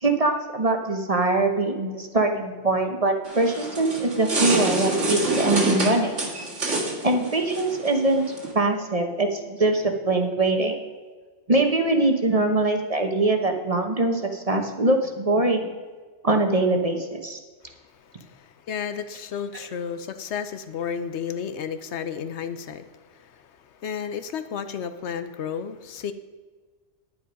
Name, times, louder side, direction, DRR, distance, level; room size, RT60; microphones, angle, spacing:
voice 1, 0.0-6.2 7.0-10.7 11.5-15.7 16.2-17.4, right 2 dB, 35° right, 4 dB, 1.0 m, -23 dB
sound 1, 3.3-8.5, right 2 dB, 90° right, 2.2 m, -26 dB
voice 2, 17.6-26.1, left 7 dB, 70° left, 11 dB, 0.9 m, -33 dB
10.0 x 9.3 x 5.2 m, 1.4 s
omnidirectional pair, 1.2 m